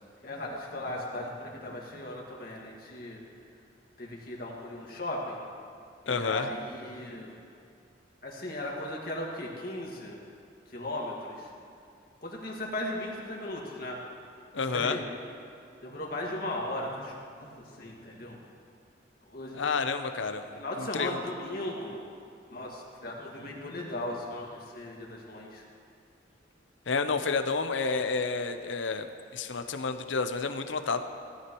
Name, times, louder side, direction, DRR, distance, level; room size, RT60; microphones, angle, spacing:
voice 1, 0.2-3.2 4.0-5.4 6.1-7.4 8.2-10.2 10.7-11.5 12.2-14.0 14.6-15.0 15.8-18.4 19.3-19.8 20.6-22.0 22.5-25.6, left 1 dB, 50° left, -2 dB, 1.9 m, -37 dB
voice 2, 6.1-6.5 14.5-15.0 19.5-21.2 26.9-29.1 29.3-31.0, left 4 dB, 85° left, 8 dB, 0.7 m, -30 dB
17.5 x 13.0 x 3.1 m, 2.5 s
head